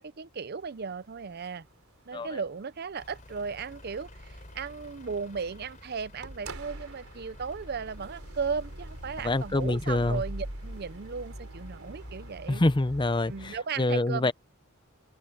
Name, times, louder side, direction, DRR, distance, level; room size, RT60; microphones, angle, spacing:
voice 1, 0.0-1.7 2.1-12.6 13.3-14.3, right 5 dB, 45° right, 0.6 m, -36 dB
sound 1, 0.6-13.6, right 1 dB, 80° right, 3.7 m, -44 dB
Truck / Idling, 3.0-12.4, left 1 dB, 35° left, 3.7 m, -52 dB
voice 2, 9.2-10.2 12.5-14.3, left 2 dB, 20° left, 0.6 m, -26 dB
head